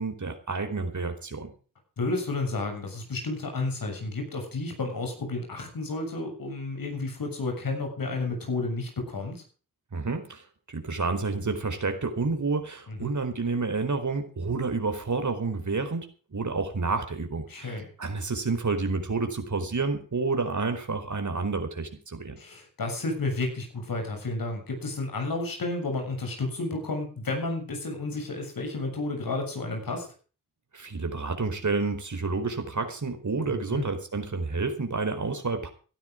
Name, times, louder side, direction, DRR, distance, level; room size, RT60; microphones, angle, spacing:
voice 1, 0.0-1.5 9.9-22.4 30.7-35.7, right 4 dB, 60° right, 7 dB, 4.5 m, -29 dB
voice 2, 2.0-9.4 12.9-13.1 17.5-17.9 22.4-30.1 33.5-33.8, left 3 dB, 80° left, 3 dB, 7.3 m, -31 dB
16.5 x 12.5 x 5.0 m, 0.38 s
cardioid pair, 45°, 34 cm